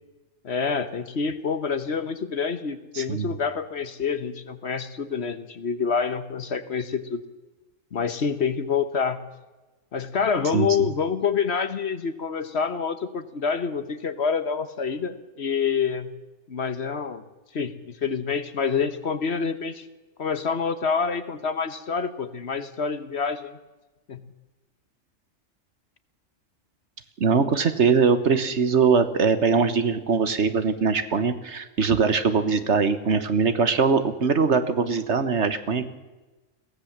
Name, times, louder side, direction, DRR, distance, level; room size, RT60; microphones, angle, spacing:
voice 1, 0.4-7.2 7.9-9.2 9.9-16.1 16.5-17.2 17.5-19.9 20.2-23.6 24.1-24.2, left 6 dB, 55° left, 12 dB, 1.3 m, -27 dB
voice 2, 2.9-3.3 10.5-10.9 27.2-35.9, right 5 dB, 60° right, 11 dB, 1.5 m, -22 dB
22.0 x 16.5 x 7.3 m, 1.2 s
omnidirectional pair, 1.4 m